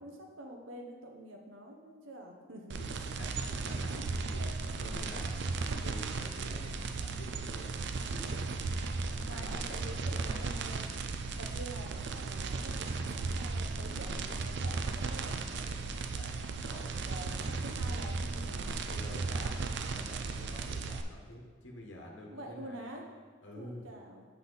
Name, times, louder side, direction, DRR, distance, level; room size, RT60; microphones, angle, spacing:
voice 1, 0.0-2.8 3.5-4.0 4.3-4.8 5.7-6.0 8.0-8.6 9.3-10.9 11.4-15.4 17.0-18.9 22.3-23.0 23.5-24.3, right 1 dB, 80° right, 1 dB, 1.1 m, -47 dB
sound 1, 2.7-21.0, right 4 dB, 60° right, 0.4 m, -36 dB
voice 2, 2.8-3.3 3.6-4.3 4.8-5.4 5.7-7.8 9.1-10.4 15.5-16.9 18.9-19.6 19.9-22.9 23.4-23.9, left 1 dB, 65° left, -1 dB, 1.3 m, -48 dB
7.0 x 5.7 x 4.1 m, 1.5 s
head